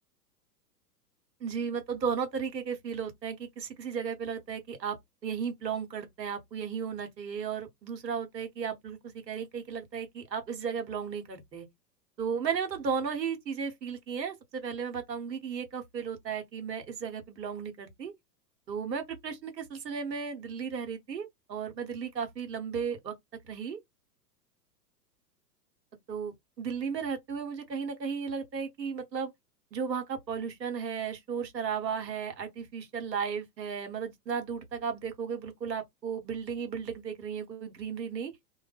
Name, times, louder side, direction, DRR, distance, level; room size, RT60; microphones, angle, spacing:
voice 1, 1.4-5.0 5.2-11.7 12.2-18.1 18.7-23.1 23.4-23.8 26.1-29.3 29.7-38.3, right 6 dB, 85° right, 1.0 m, -35 dB
2.1 x 2.1 x 3.3 m
figure-of-eight pair, 105°, 50 cm